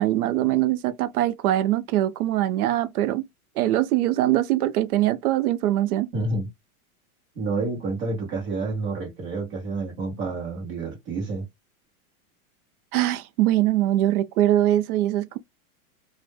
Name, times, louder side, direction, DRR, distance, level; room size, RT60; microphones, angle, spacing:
voice 1, 0.0-3.2 3.6-6.1 12.9-15.4, right 13 dB, 75° right, 0.5 m, -22 dB
voice 2, 6.1-6.5 7.3-11.5, right 3 dB, 15° right, 0.5 m, -29 dB
2.1 x 2.0 x 3.1 m
supercardioid pair, 175°, 44 cm